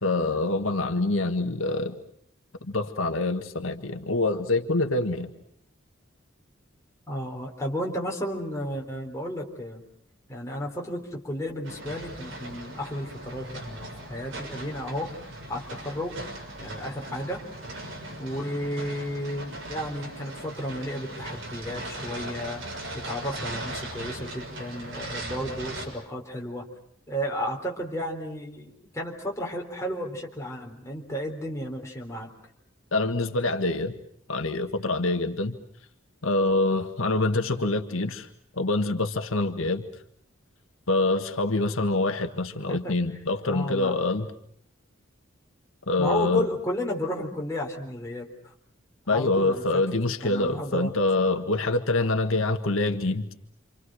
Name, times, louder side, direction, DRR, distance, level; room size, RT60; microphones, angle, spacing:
voice 1, 0.0-2.0 2.6-5.3 32.9-33.9 34.3-35.6 36.2-38.3 38.5-39.8 40.9-44.3 45.9-46.5 49.1-53.3, left 2 dB, 85° left, 6 dB, 1.7 m, -25 dB
voice 2, 7.1-9.8 10.3-15.1 15.5-16.2 16.6-17.4 18.2-22.6 22.9-26.7 27.1-32.3 42.7-42.9 43.5-44.0 46.0-48.5 49.1-49.8 50.2-50.9, equal, 15° left, -1 dB, 4.0 m, -33 dB
sound 1, 11.6-25.9, right 1 dB, 70° right, 6.5 m, -38 dB
28.0 x 27.5 x 6.4 m, 0.65 s
head